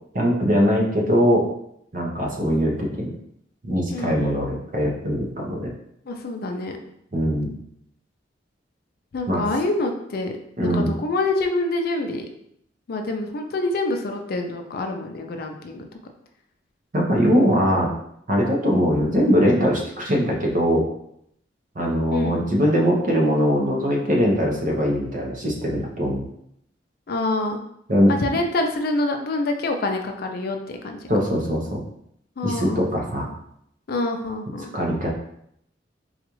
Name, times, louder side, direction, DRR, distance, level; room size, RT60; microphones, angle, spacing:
voice 1, 0.1-1.4 1.9-3.1 3.6-5.7 7.1-7.5 9.3-9.4 10.6-10.9 16.9-17.9 18.3-20.9 21.7-26.3 27.9-28.1 31.1-31.8 32.4-33.3 34.7-35.1, equal, 45° right, -1 dB, 0.7 m, -21 dB
voice 2, 3.9-4.4 6.1-6.8 9.1-10.3 10.6-12.3 12.9-15.9 22.1-22.4 27.1-27.6 28.1-30.6 30.8-31.1 32.4-32.9 33.9-34.7, left 2 dB, 55° left, 4 dB, 0.4 m, -26 dB
4.0 x 2.4 x 3.0 m, 0.73 s
head